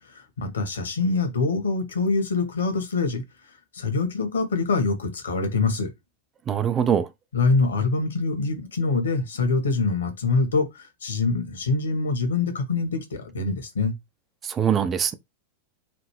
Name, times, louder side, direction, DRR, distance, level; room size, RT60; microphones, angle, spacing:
voice 1, 0.1-3.2 3.7-5.9 7.3-13.9, left 3 dB, 70° left, 1.4 m, -24 dB
voice 2, 6.5-7.1 14.5-15.1, right 8 dB, 25° right, 0.5 m, -22 dB
5.0 x 2.6 x 3.2 m
figure-of-eight pair, 90°, 0 cm